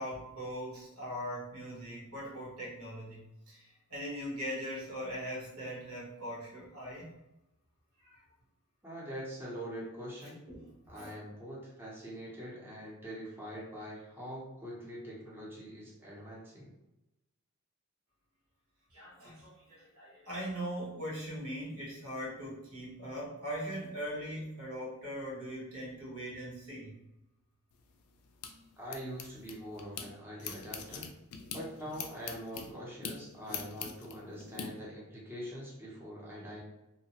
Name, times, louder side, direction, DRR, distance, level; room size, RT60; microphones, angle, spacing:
voice 1, 0.0-7.1 8.0-8.2 10.2-10.7 10.9-11.1 18.9-27.0, equal, 85° right, -4 dB, 1.1 m, -40 dB
voice 2, 8.8-10.4 10.9-16.7 28.8-31.1 31.5-36.6, equal, 10° right, -6 dB, 0.7 m, -44 dB
sound 1, 27.7-30.1 30.4-34.7, left 6 dB, 90° left, 0.4 m, -43 dB
2.8 x 2.0 x 2.8 m, 0.94 s
head